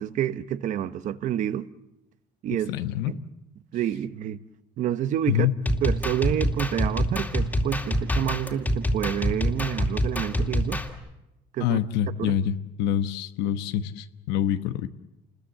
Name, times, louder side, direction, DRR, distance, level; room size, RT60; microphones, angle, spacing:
voice 1, 0.0-1.7 2.4-2.7 3.1-3.2 3.7-4.4 4.8-5.5 5.8-10.8 11.5-11.8 12.2-12.3, right 11 dB, 45° right, 1.0 m, -28 dB
voice 2, 2.7-3.1 5.3-5.6 11.6-14.9, left 11 dB, 85° left, 1.2 m, -26 dB
sound 1, 5.7-10.9, equal, 10° left, 2.5 m, -26 dB
28.5 x 21.0 x 7.5 m
cardioid pair, 155°, 17 cm